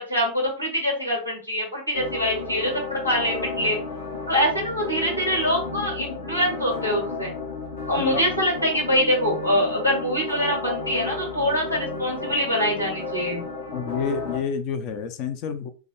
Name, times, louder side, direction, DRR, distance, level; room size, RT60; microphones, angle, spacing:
voice 1, 0.0-3.8 4.3-7.3 7.9-13.5, equal, 85° left, -1 dB, 1.7 m, -24 dB
sound 1, 1.9-14.4, left 3 dB, 65° left, 1.2 m, -33 dB
voice 2, 13.7-15.7, left 6 dB, 40° left, 9 dB, 0.5 m, -29 dB
4.8 x 2.3 x 3.1 m, 0.36 s
figure-of-eight pair, 90°, 0 cm